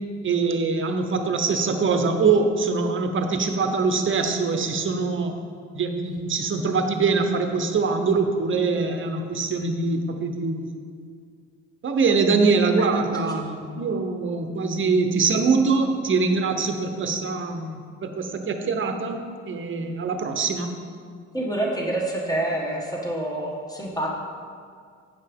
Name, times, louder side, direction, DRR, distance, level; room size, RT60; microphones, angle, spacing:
voice 1, 0.2-5.4 5.7-10.6 11.8-20.7, right 4 dB, 40° right, 6 dB, 0.8 m, -23 dB
voice 2, 21.3-24.1, right 1 dB, 10° left, -2 dB, 1.4 m, -27 dB
8.8 x 5.4 x 3.5 m, 2.1 s
cardioid pair, 90°, 30 cm